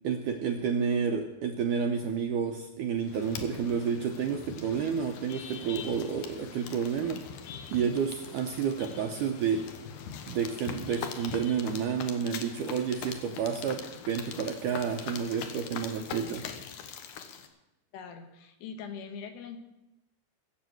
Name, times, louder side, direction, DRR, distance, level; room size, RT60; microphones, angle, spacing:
voice 1, 0.0-7.2 7.7-9.7 10.3-16.5, right 7 dB, 75° right, 4 dB, 1.9 m, -30 dB
sound 1, 3.0-17.5, left 7 dB, 70° left, 2.3 m, -42 dB
voice 2, 17.9-19.6, left 6 dB, 85° left, 7 dB, 3.4 m, -42 dB
17.5 x 7.4 x 7.7 m, 0.95 s
omnidirectional pair, 4.6 m